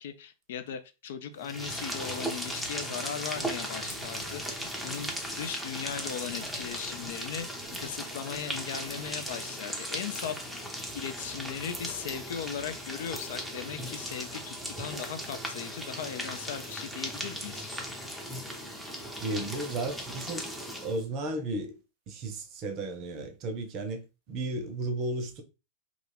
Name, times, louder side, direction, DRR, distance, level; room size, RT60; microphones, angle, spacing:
voice 1, 0.0-7.5 7.8-10.4 10.9-17.7, left 8 dB, 55° left, 0.3 m, -38 dB
sound 1, 1.4-21.0, equal, ahead, 0.6 m, -37 dB
sound 2, 3.3-9.3, equal, 85° right, 0.4 m, -51 dB
voice 2, 19.2-20.5 20.8-21.8 22.1-25.4, right 2 dB, 40° right, 0.6 m, -34 dB
2.4 x 2.4 x 3.2 m
figure-of-eight pair, 90°, 0 cm